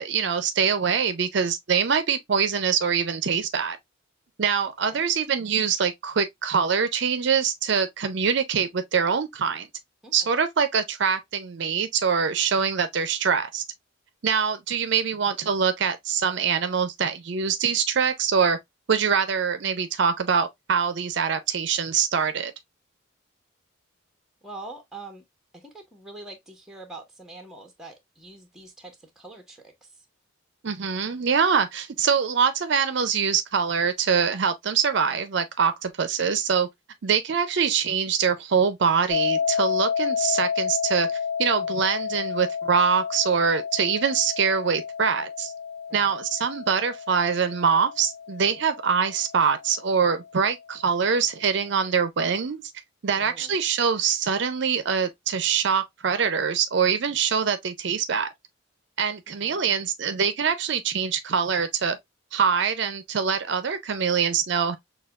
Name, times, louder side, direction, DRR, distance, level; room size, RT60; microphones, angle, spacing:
voice 1, 0.0-3.8 4.4-9.7 10.1-13.6 14.2-18.6 18.9-22.5 30.6-36.7 37.0-41.1 41.4-45.5 45.9-52.6 53.0-58.3 59.0-62.0 62.3-64.8, right 6 dB, 55° right, 0.5 m, -24 dB
voice 2, 24.4-25.2 25.5-30.0 45.9-46.1 53.2-53.5 59.4-59.6, right 2 dB, 5° right, 1.0 m, -44 dB
sound 1, 39.1-50.0, left 6 dB, 15° left, 2.0 m, -30 dB
6.4 x 2.3 x 2.3 m
head